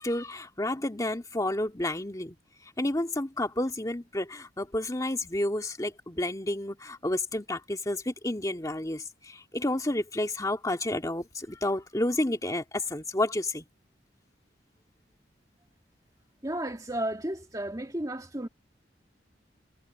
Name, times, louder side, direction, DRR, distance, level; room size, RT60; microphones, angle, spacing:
voice 1, 0.0-2.4 2.8-13.6, left 1 dB, 20° left, 2.1 m, -30 dB
voice 2, 16.4-18.5, right 1 dB, 20° right, 2.3 m, -33 dB
head